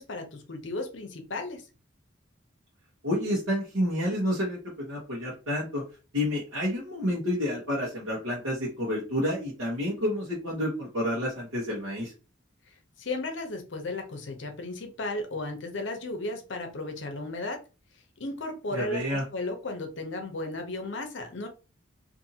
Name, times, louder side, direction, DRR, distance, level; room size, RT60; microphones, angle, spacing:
voice 1, 0.0-1.6 13.0-17.6 18.2-21.5, left 2 dB, 65° left, 5 dB, 0.7 m, -35 dB
voice 2, 3.0-5.8 6.1-12.1 18.7-19.2, left 1 dB, 80° right, -6 dB, 1.0 m, -29 dB
2.6 x 2.6 x 2.7 m, 0.33 s
head